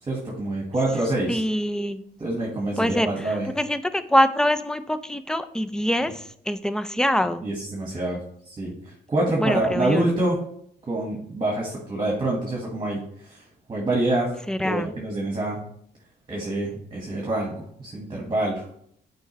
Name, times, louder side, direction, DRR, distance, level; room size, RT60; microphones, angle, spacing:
voice 1, 0.1-1.4 2.2-3.5 7.4-8.2 8.4-10.4 10.9-14.3 14.6-15.6 16.3-18.7, right 2 dB, 25° right, -2 dB, 1.7 m, -26 dB
voice 2, 1.3-2.0 2.8-7.4 9.4-10.1 14.5-14.9, equal, 5° left, 11 dB, 0.5 m, -24 dB
8.3 x 4.7 x 3.2 m, 0.67 s
cardioid pair, 90°, 20 cm